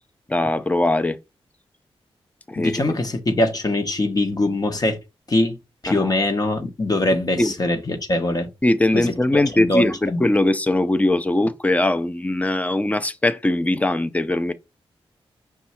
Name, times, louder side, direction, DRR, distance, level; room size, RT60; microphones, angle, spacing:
voice 1, 0.3-1.2 2.5-2.8 5.9-6.1 7.4-7.5 8.6-14.5, left 1 dB, 15° left, 0.5 m, -21 dB
voice 2, 2.6-5.0 5.3-5.6 5.8-8.5 8.9-10.2, left 2 dB, 40° left, 0.9 m, -22 dB
5.4 x 2.3 x 4.2 m
cardioid pair, 65°, 10 cm